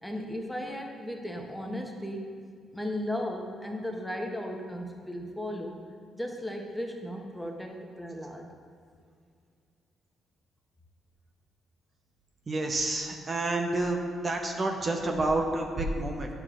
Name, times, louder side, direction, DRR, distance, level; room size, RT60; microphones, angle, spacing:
voice 1, 0.0-2.3 2.7-5.8 6.2-8.5, left 1 dB, 5° left, 1 dB, 0.9 m, -36 dB
voice 2, 12.5-14.0 14.2-16.3, right 2 dB, 35° right, 2 dB, 0.7 m, -29 dB
10.0 x 6.8 x 2.5 m, 2.2 s
cardioid pair, 90°, 0 cm